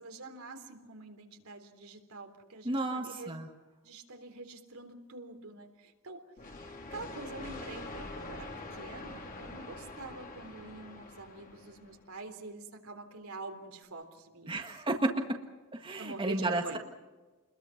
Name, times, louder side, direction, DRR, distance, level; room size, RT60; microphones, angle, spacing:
voice 1, 0.0-3.3 3.8-14.6 16.0-16.8, right 2 dB, 80° right, 5 dB, 3.6 m, -46 dB
voice 2, 2.6-3.5 14.5-15.4 15.7-16.8, right 2 dB, 25° right, 3 dB, 1.7 m, -32 dB
sound 1, 6.4-12.1, left 2 dB, 40° left, 3.7 m, -45 dB
29.5 x 21.5 x 5.9 m, 1.2 s
head